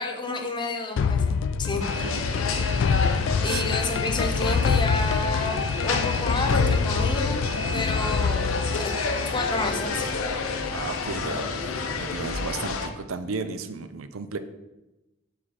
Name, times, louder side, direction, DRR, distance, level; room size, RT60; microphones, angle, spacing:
voice 1, 0.0-1.8 3.4-9.0 9.3-10.2, left 2 dB, 25° left, 4 dB, 0.7 m, -30 dB
sound 1, 1.0-9.8, left 5 dB, 60° left, 0.3 m, -26 dB
sound 2, 1.8-12.9, left 3 dB, 90° left, 0.7 m, -29 dB
voice 2, 2.0-2.3 3.4-3.6 5.8-6.0 10.7-14.4, right 4 dB, 80° right, 11 dB, 0.5 m, -34 dB
sound 3, 7.0-10.3, equal, 50° right, 1.9 m, -46 dB
5.7 x 4.8 x 4.2 m, 1.0 s
head